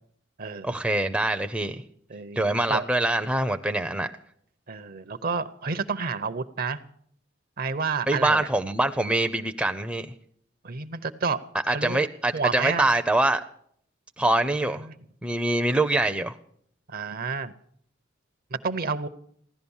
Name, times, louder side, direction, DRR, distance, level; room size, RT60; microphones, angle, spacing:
voice 1, 0.6-1.8 2.4-4.1 8.1-10.1 11.7-13.4 14.2-14.9 15.2-16.4, right 2 dB, 5° right, 0.5 m, -24 dB
voice 2, 2.1-2.4 2.7-2.8 4.7-6.8 7.6-8.5 10.6-11.4 11.7-12.0 12.3-12.9 14.8-14.9 16.9-17.5 18.5-19.1, right 5 dB, 50° right, 0.7 m, -30 dB
16.0 x 11.5 x 7.1 m
head